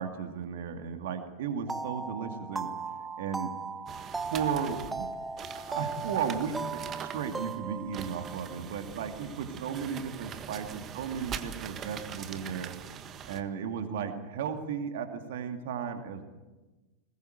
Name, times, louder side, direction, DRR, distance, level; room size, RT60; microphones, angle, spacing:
voice 1, 0.0-2.7 3.2-3.5 4.3-5.1 5.5-12.7 13.3-16.2, right 7 dB, 55° right, 6 dB, 2.5 m, -35 dB
sound 1, 1.7-9.1, right 4 dB, 10° right, 1.1 m, -38 dB
sound 2, 3.9-13.4, right 8 dB, 30° right, 1.5 m, -42 dB
21.5 x 20.5 x 8.1 m, 1.2 s
figure-of-eight pair, 90°, 0 cm